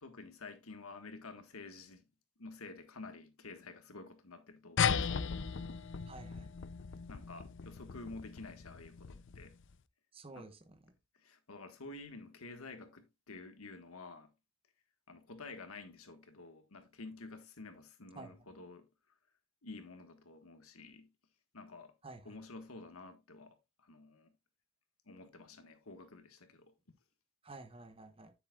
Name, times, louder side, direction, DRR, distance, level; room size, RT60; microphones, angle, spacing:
voice 1, 0.0-2.0 2.4-5.4 7.1-9.6 10.3-10.5 11.2-14.3 15.1-18.9 19.6-21.1 21.5-21.9 22.2-24.3 25.0-26.7, left 3 dB, 80° left, 1.6 m, -50 dB
sound 1, 4.8-9.6, left 6 dB, 60° left, 0.5 m, -36 dB
voice 2, 6.1-6.5 10.1-10.8 18.2-18.3 22.0-22.4 27.4-28.3, right 2 dB, 25° right, 1.1 m, -51 dB
9.6 x 8.3 x 2.4 m
head